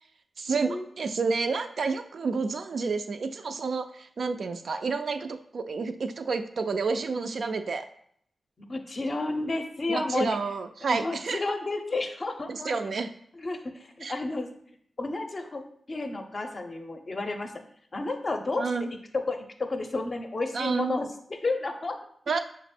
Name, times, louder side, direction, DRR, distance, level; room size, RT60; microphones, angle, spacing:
voice 1, 0.4-7.9 9.9-11.4 12.5-13.1 14.0-14.1 18.6-18.9 20.5-21.0 22.3-22.4, right 4 dB, 65° right, 8 dB, 0.3 m, -29 dB
voice 2, 8.6-10.4 10.9-12.8 13.3-14.5 15.0-15.6 15.9-17.5 17.9-18.7 19.1-21.1 21.4-22.0, left 2 dB, 40° left, 5 dB, 0.5 m, -31 dB
5.9 x 2.0 x 4.2 m, 0.66 s
wide cardioid pair, 105°, 0 cm